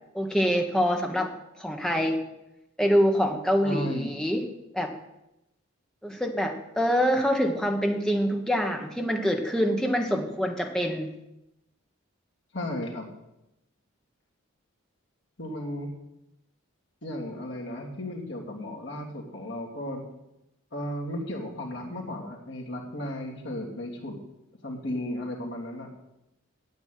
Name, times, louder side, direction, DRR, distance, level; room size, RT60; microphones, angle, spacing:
voice 1, 0.1-2.2 2.8-4.4 4.7-4.9 6.0-11.1, equal, 5° left, 2 dB, 1.3 m, -25 dB
voice 2, 3.6-4.2 12.5-13.1 15.4-15.9 17.0-20.0 20.7-24.2 24.6-25.9, left 1 dB, 55° left, 0 dB, 2.9 m, -34 dB
9.4 x 8.3 x 9.5 m, 0.88 s
head